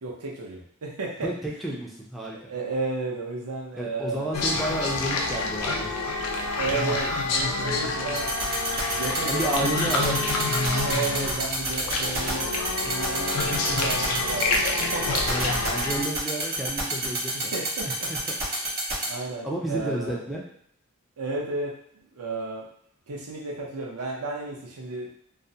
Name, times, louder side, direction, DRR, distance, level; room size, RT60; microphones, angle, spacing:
voice 1, 0.0-1.3 2.5-4.4 6.6-8.3 8.9-10.2 10.8-15.2 17.0-17.1 17.5-18.1 19.1-20.2 21.2-21.7 22.2-22.7 23.1-25.1, right 3 dB, 90° right, -1 dB, 0.6 m, -33 dB
voice 2, 1.2-2.5 3.7-5.9 9.2-10.2 15.3-17.5 17.8-18.2 19.4-20.4, right 1 dB, ahead, -3 dB, 0.3 m, -31 dB
sound 1, 4.3-16.0, left 3 dB, 85° left, 0.4 m, -28 dB
sound 2, 8.2-19.1, right 3 dB, 45° right, 0.8 m, -28 dB
2.4 x 2.0 x 2.6 m, 0.69 s
head